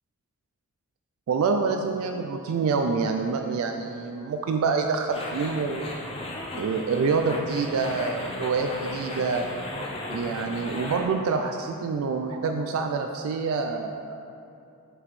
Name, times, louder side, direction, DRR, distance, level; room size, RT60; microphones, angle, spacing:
voice 1, 1.3-5.9 6.5-9.4 10.1-14.2, right 4 dB, 70° right, 5 dB, 0.3 m, -27 dB
sound 1, 5.1-11.0, left 1 dB, 25° left, 0.6 m, -36 dB
6.0 x 5.8 x 3.2 m, 2.7 s
head